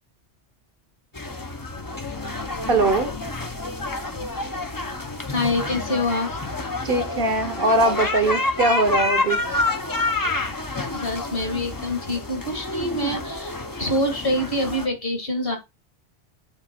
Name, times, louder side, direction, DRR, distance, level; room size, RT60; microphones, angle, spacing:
sound 1, 1.1-14.9, left 2 dB, 20° left, 0.7 m, -28 dB
voice 1, 2.7-3.1 6.8-9.4, right 2 dB, 50° right, 1.1 m, -21 dB
voice 2, 5.3-6.3 10.9-15.6, left 1 dB, 55° left, 2.0 m, -26 dB
8.1 x 3.1 x 4.2 m
omnidirectional pair, 1.2 m